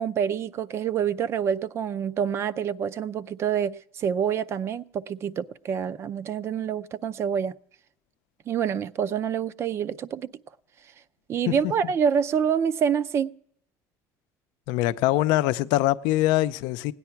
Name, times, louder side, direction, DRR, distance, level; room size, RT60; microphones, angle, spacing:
voice 1, 0.0-7.5 8.5-10.3 11.3-13.3, right 8 dB, 35° right, 0.5 m, -27 dB
voice 2, 14.7-16.9, left 16 dB, 85° left, 0.5 m, -23 dB
17.0 x 9.8 x 5.8 m
cardioid pair, 145°, 7 cm